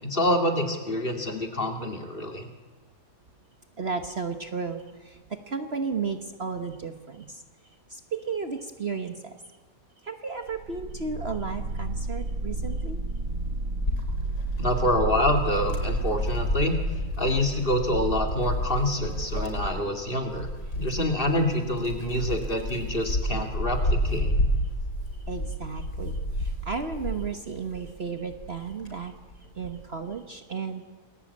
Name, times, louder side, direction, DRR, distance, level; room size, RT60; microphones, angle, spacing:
voice 1, 0.0-2.5 14.6-16.8 17.2-20.5 20.8-24.3, left 1 dB, 35° left, 4 dB, 2.8 m, -26 dB
voice 2, 3.8-7.4 7.9-9.4 10.0-13.0 25.3-29.1 29.5-30.9, right 5 dB, 40° right, 7 dB, 1.4 m, -34 dB
sound 1, 10.5-18.2, right 2 dB, 75° right, 2.3 m, -31 dB
Wind, 13.8-27.9 28.3-29.8, equal, 90° left, 5.8 m, -31 dB
28.5 x 21.0 x 8.6 m, 1.4 s
omnidirectional pair, 1.7 m